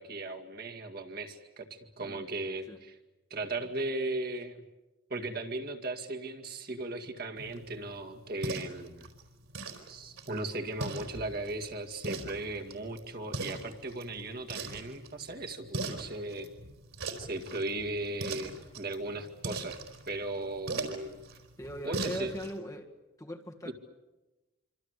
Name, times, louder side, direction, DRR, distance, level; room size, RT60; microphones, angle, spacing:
voice 1, 0.0-3.0 3.3-4.6 5.1-9.1 9.9-16.5 17.2-19.8 20.1-21.2 21.8-22.4 23.7-23.8, right 2 dB, 45° right, 4 dB, 2.1 m, -37 dB
sound 1, 7.4-22.6, right 2 dB, 85° right, 4.3 m, -41 dB
voice 2, 21.6-22.9 23.2-23.7, equal, 15° left, 2 dB, 1.9 m, -40 dB
26.0 x 26.0 x 8.2 m, 1.1 s
head